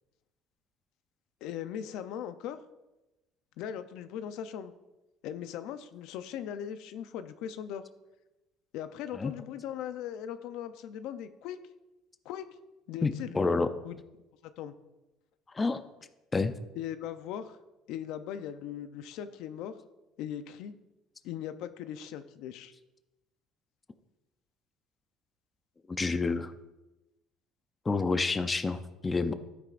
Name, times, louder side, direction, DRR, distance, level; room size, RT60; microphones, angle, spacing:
voice 1, 1.4-2.6 3.6-4.7 5.2-7.8 8.7-11.6 12.2-12.5 12.9-13.9 14.4-14.7 16.7-17.6 17.9-19.8 20.2-20.7 21.2-22.7, left 9 dB, 75° left, 11 dB, 0.6 m, -39 dB
voice 2, 13.0-13.7 15.5-15.8 16.3-16.5 25.9-26.5 27.9-29.3, left 3 dB, 20° left, 10 dB, 0.5 m, -28 dB
12.5 x 9.6 x 2.5 m, 1.0 s
cardioid pair, 135°, 0 cm